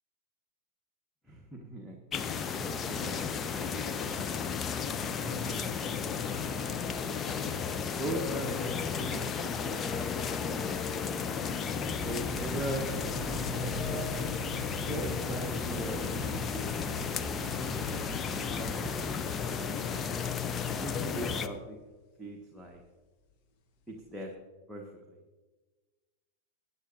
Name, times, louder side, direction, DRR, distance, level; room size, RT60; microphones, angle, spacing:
voice 1, 1.3-2.0 2.6-4.7 5.2-6.6 8.0-9.8 10.1-10.8 11.5-14.1 14.8-17.1 17.5-17.8 18.4-18.7 19.4-19.9 20.7-21.8 22.2-22.8 23.9-24.3 24.7-25.2, right 1 dB, 5° right, -2 dB, 1.5 m, -41 dB
sound 1, 2.1-21.5, left 6 dB, 25° left, 0.6 m, -33 dB
sound 2, 5.8-10.2 10.5-10.8 11.3-11.4 12.2-15.6 15.8-22.1 22.7-22.8 23.1-23.3 23.7-24.3, left 3 dB, 40° left, 1.4 m, -49 dB
sound 3, 11.8-19.2, right 3 dB, 20° right, 3.6 m, -43 dB
20.0 x 9.7 x 2.7 m, 1.3 s
figure-of-eight pair, 90°, 0 cm